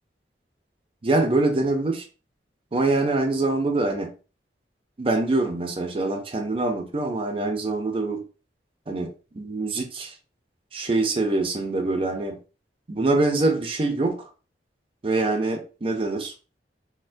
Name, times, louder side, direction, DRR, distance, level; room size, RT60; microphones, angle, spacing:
voice 1, 1.0-2.1 2.7-4.1 5.0-8.2 8.9-10.1 10.7-12.4 12.9-14.3 15.0-16.3, right 2 dB, 30° right, 4 dB, 0.5 m, -24 dB
4.2 x 2.1 x 2.5 m, 0.34 s
head